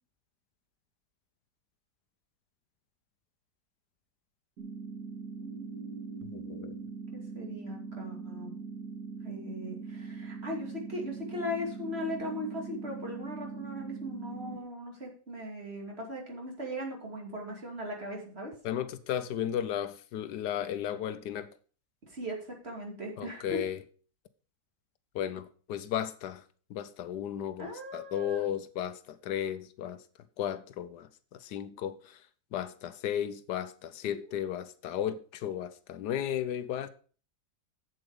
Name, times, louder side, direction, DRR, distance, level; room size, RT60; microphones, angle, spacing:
sound 1, 4.6-14.6, right 4 dB, 60° right, 2.1 m, -41 dB
voice 1, 5.4-6.8 7.1-8.5 9.2-18.5 22.1-23.6 27.6-28.4 34.1-34.3, equal, 35° right, 2.8 m, -39 dB
voice 2, 6.2-6.7 18.6-21.5 23.2-23.8 25.1-26.4 26.7-30.0 30.4-32.2 32.5-36.9, left 10 dB, 80° left, 1.3 m, -34 dB
7.9 x 7.8 x 5.0 m
omnidirectional pair, 1.8 m